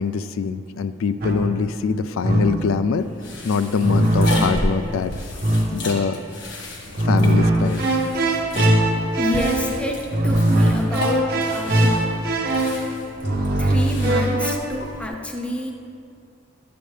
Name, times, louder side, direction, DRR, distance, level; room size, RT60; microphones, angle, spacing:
voice 1, 0.0-3.1 3.4-5.1 5.7-6.2 7.0-7.9, left 5 dB, 85° left, 12 dB, 0.4 m, -23 dB
sound 1, 1.2-1.7 2.2-2.8 3.8-4.8 5.4-6.0 7.0-14.5, right 1 dB, 50° right, 0.9 m, -20 dB
sound 2, 3.0-15.1, left 1 dB, 60° left, 1.5 m, -33 dB
voice 2, 9.2-11.9 13.6-15.7, equal, 5° left, 2 dB, 0.6 m, -28 dB
12.0 x 7.0 x 3.2 m, 2.4 s
head